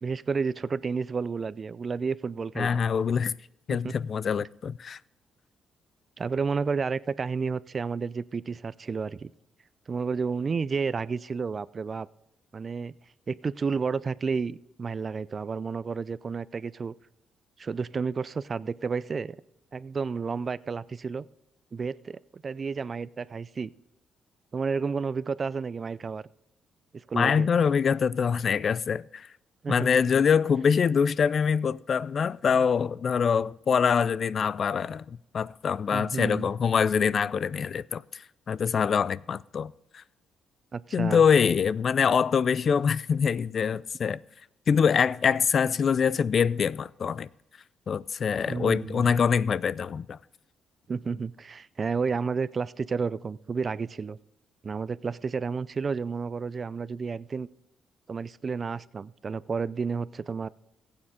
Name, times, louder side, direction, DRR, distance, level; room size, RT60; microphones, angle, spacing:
voice 1, 0.0-2.9 3.7-3.9 6.2-9.3 9.9-12.1 12.5-12.9 13.3-16.9 17.6-19.4 19.7-21.3 21.7-23.7 24.5-26.2 26.9-27.5 29.6-29.9 35.9-36.5 40.7-41.2 48.5-49.1 50.9-54.2 54.6-57.5 58.1-60.5, right 5 dB, 40° right, 0.4 m, -31 dB
voice 2, 2.6-3.3 3.7-5.0 27.1-29.3 29.7-40.0 40.9-44.2 44.7-47.3 47.9-50.2, left 6 dB, 50° left, 0.3 m, -24 dB
15.5 x 8.8 x 3.7 m
cardioid pair, 90°, 0 cm